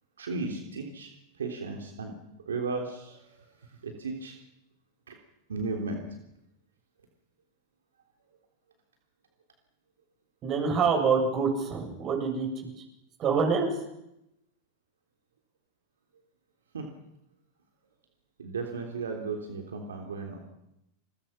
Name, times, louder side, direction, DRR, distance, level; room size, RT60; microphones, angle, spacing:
voice 1, 0.2-1.1 1.4-2.1 2.4-3.2 3.8-4.4 5.1-5.2 5.5-6.0 16.7-16.9 18.4-20.4, right 4 dB, 90° right, 2 dB, 3.4 m, -34 dB
voice 2, 10.4-12.7 13.2-13.7, right 5 dB, 40° right, 3 dB, 7.9 m, -26 dB
28.0 x 22.5 x 6.0 m, 0.86 s
hypercardioid pair, 100°, 0 cm